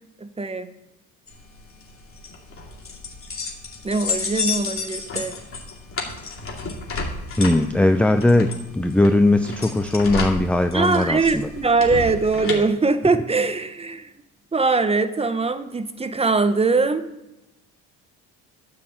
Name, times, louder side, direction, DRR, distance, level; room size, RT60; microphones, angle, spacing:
voice 1, 0.2-0.7 3.8-5.3 10.7-14.1 14.5-17.0, right 3 dB, 15° right, 11 dB, 0.8 m, -21 dB
sound 1, 1.3-12.6, left 4 dB, 35° left, 2.8 m, -31 dB
voice 2, 7.4-8.5 8.7-11.5, left 2 dB, 5° left, 8 dB, 0.4 m, -19 dB
9.7 x 5.8 x 7.8 m, 0.96 s
cardioid pair, 110°, 36 cm